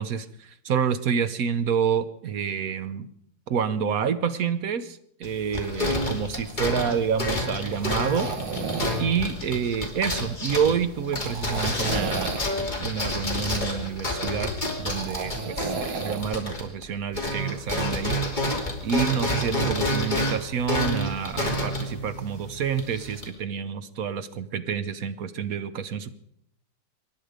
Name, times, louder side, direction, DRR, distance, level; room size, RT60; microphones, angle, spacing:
voice 1, 0.0-3.1 3.5-8.3 9.0-12.4 12.8-14.5 14.8-18.2 18.8-26.1, right 7 dB, 55° right, 11 dB, 1.1 m, -28 dB
sound 1, 5.2-16.9 17.1-23.3, left 1 dB, 20° left, 3.0 m, -29 dB
sound 2, 6.1-17.9, right 5 dB, 80° right, 2.2 m, -36 dB
25.0 x 11.0 x 5.0 m, 0.69 s
omnidirectional pair, 2.2 m